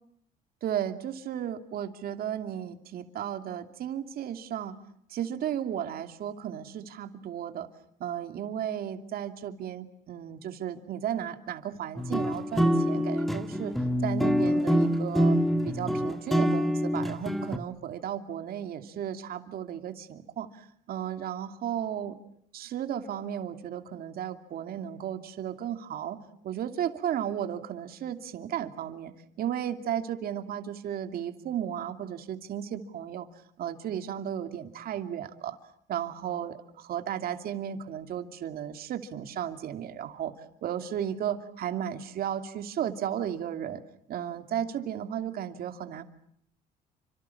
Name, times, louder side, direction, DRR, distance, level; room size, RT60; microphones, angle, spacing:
voice 1, 0.6-4.7 5.1-7.7 8.0-13.7 14.0-15.4 15.6-22.1 22.5-26.2 26.4-29.1 29.4-33.3 33.6-35.6 35.9-40.3 40.6-43.8 44.1-46.0, right 10 dB, 60° right, 8 dB, 2.7 m, -34 dB
sound 1, 12.0-17.6, equal, ahead, 1.9 m, -25 dB
29.5 x 26.0 x 7.2 m, 0.70 s
cardioid pair, 110°, 17 cm